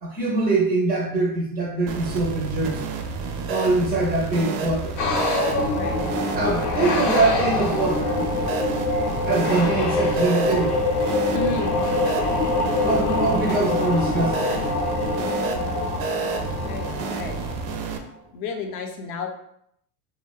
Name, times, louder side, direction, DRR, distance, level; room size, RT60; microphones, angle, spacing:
voice 1, 0.0-2.8 3.5-5.0 6.3-8.2 9.3-10.8 12.8-14.6, right 2 dB, 20° right, -2 dB, 0.4 m, -23 dB
sound 1, 1.9-18.0, right 4 dB, 80° right, 0.5 m, -30 dB
sound 2, 5.0-17.9, left 2 dB, 90° left, 0.7 m, -25 dB
voice 2, 11.3-11.9 13.1-13.4 16.5-17.4 18.3-19.3, left 4 dB, 45° left, 4 dB, 0.5 m, -32 dB
2.7 x 2.1 x 2.3 m, 0.72 s
supercardioid pair, 130°, 46 cm